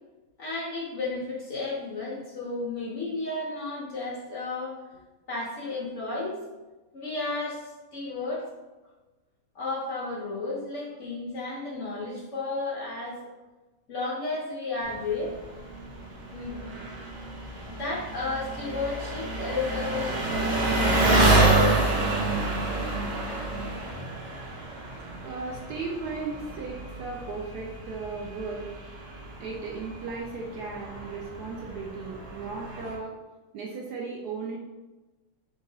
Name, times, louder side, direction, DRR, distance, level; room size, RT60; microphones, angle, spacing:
voice 1, 0.4-4.8 5.3-6.4 6.9-8.5 9.5-13.2 13.9-15.4 16.3-16.7 17.7-22.4, left 3 dB, 85° left, -4 dB, 0.6 m, -33 dB
Engine, 14.8-32.9, right 2 dB, 55° right, 1.1 m, -28 dB
voice 2, 25.2-28.7 29.4-33.2 33.5-34.6, right 4 dB, 85° right, -2 dB, 0.8 m, -36 dB
4.5 x 3.7 x 2.7 m, 1.2 s
omnidirectional pair, 2.4 m